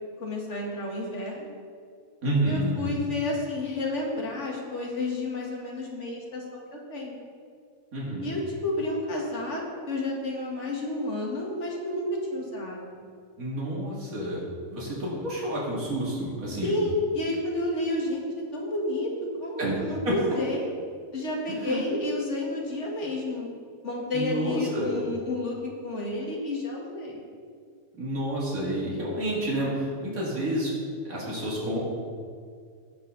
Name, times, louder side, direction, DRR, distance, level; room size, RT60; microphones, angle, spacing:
voice 1, 0.2-1.5 2.5-7.2 8.2-13.1 16.6-19.1 19.4-20.7 21.1-23.5 23.8-27.2, left 2 dB, 55° left, -2 dB, 2.0 m, -31 dB
voice 2, 2.2-2.9 7.9-8.3 13.4-14.4 14.7-16.7 19.6-19.8 21.7-21.8 24.1-24.9 28.0-30.7 31.1-31.8, right 1 dB, 80° right, -6 dB, 2.7 m, -29 dB
17.0 x 5.8 x 3.9 m, 2.1 s
omnidirectional pair, 1.5 m